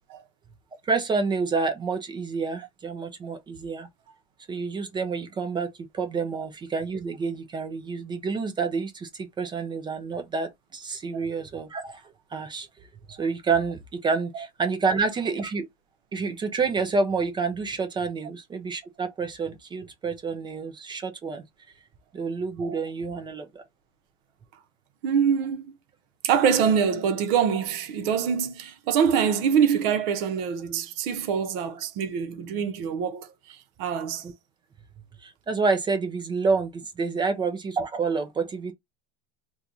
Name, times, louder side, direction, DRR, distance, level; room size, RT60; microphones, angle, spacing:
voice 1, 0.8-3.9 4.5-12.9 13.2-15.7 16.1-21.4 22.1-23.6 34.2-34.3 35.2-38.7, right 4 dB, 15° right, 0.4 m, -28 dB
voice 2, 25.0-25.7 26.2-34.2, right 7 dB, 65° right, 0.8 m, -25 dB
2.9 x 2.3 x 3.8 m
supercardioid pair, 150°, 30 cm